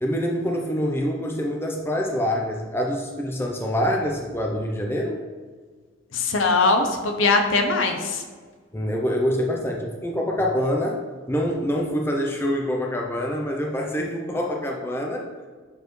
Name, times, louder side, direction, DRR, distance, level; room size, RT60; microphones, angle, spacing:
voice 1, 0.0-5.2 8.7-11.0 11.3-15.5, equal, 10° left, 0 dB, 0.5 m, -25 dB
voice 2, 6.1-8.2, left 3 dB, 70° left, 5 dB, 0.7 m, -21 dB
6.9 x 4.5 x 3.1 m, 1.5 s
head